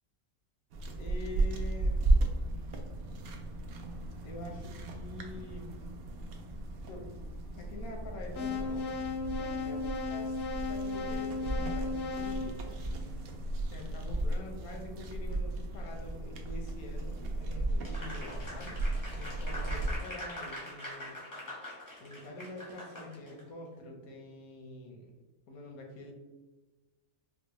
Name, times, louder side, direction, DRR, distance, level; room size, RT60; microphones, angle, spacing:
sound 1, 0.7-20.0, right 2 dB, 75° right, 0.5 m, -35 dB
voice 1, 1.0-2.0 4.2-5.7 6.8-7.1 7.5-8.9 9.2-12.8 13.7-18.8 19.1-21.2 22.0-25.2 25.5-26.1, left 1 dB, 80° left, 1 dB, 1.3 m, -46 dB
sound 2, 8.3-13.5, left 4 dB, 60° left, 0.7 m, -36 dB
Applause, 17.8-23.4, left 1 dB, 20° left, 0.6 m, -43 dB
4.5 x 2.0 x 3.0 m, 1.2 s
omnidirectional pair, 1.5 m